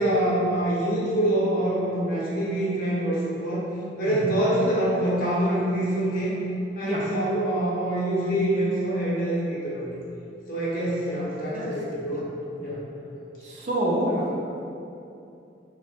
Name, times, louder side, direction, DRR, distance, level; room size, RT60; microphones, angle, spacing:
voice 1, 0.0-3.7 4.0-6.3 6.8-9.9 10.5-12.3 12.6-12.8 13.1-13.2 14.1-14.3, right 1 dB, 50° left, -8 dB, 0.8 m, -25 dB
voice 2, 13.4-14.2, right 1 dB, 40° right, -4 dB, 0.4 m, -28 dB
2.9 x 2.0 x 3.2 m, 2.7 s
head